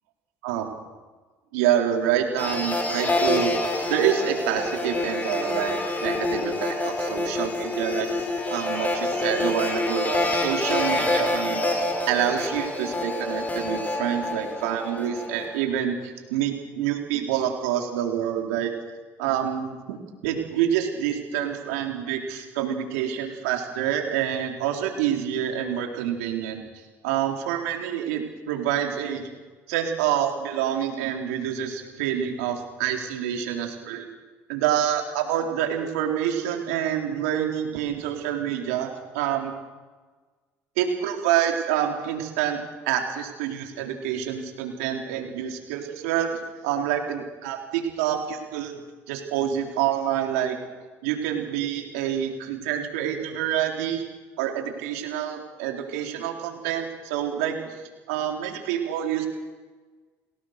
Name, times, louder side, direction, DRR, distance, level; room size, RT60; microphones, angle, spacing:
voice 1, 0.4-0.7 1.5-3.5 3.9-18.7 19.2-20.0 20.2-26.6 27.0-29.3 29.7-34.1 34.5-39.5 40.8-42.6 42.9-48.8 49.1-50.6 51.0-54.0 54.4-59.3, right 10 dB, 85° right, 2 dB, 4.0 m, -27 dB
sound 1, 2.4-15.6, left 2 dB, 25° left, 5.8 m, -27 dB
29.5 x 19.0 x 6.7 m, 1.3 s
supercardioid pair, 85°, 7 cm